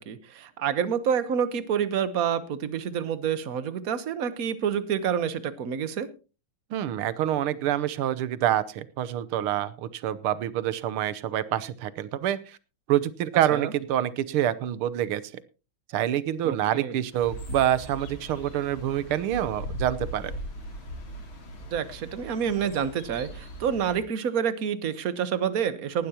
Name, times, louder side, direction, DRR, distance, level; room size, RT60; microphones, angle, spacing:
voice 1, 0.0-6.1 13.5-13.7 16.4-17.0 21.7-26.1, right 8 dB, 50° right, 14 dB, 1.3 m, -28 dB
voice 2, 6.7-12.6 12.9-15.2 15.9-20.3, right 11 dB, 85° right, 16 dB, 1.8 m, -27 dB
sound 1, 17.1-24.0, equal, 70° left, 3.8 m, -39 dB
19.0 x 11.5 x 2.9 m, 0.32 s
omnidirectional pair, 2.3 m